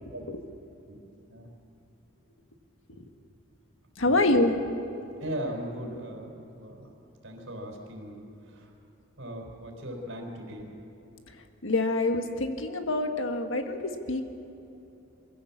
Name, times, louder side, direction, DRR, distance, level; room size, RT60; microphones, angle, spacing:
voice 1, 4.0-4.6 11.6-14.2, left 2 dB, 80° left, 6 dB, 1.6 m, -26 dB
voice 2, 5.2-6.9 7.2-8.7 9.2-10.7, right 1 dB, 85° right, 1 dB, 4.4 m, -38 dB
23.5 x 16.0 x 7.2 m, 2.9 s
head